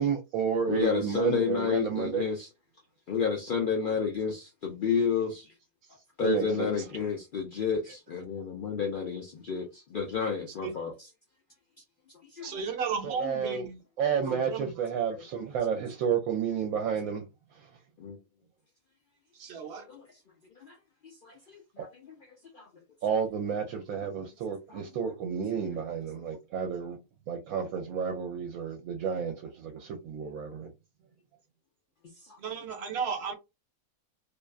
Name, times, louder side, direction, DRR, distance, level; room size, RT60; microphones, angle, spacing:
voice 1, 0.0-2.2 6.2-6.7 13.0-13.7 14.0-17.2 21.8-21.9 23.0-27.0 27.3-30.7, right 7 dB, 75° right, 1.0 m, -31 dB
voice 2, 0.7-2.5 3.1-5.5 6.2-10.9 12.3-12.6 15.1-15.2 18.0-18.2 19.9-20.0 20.6-20.8 21.2-22.7 24.7-24.8 32.3-32.4, left 6 dB, 70° left, 0.5 m, -31 dB
voice 3, 12.4-13.8 14.3-14.9 19.3-19.8 32.4-33.3, right 6 dB, 60° right, 0.8 m, -34 dB
2.7 x 2.2 x 2.3 m
omnidirectional pair, 1.5 m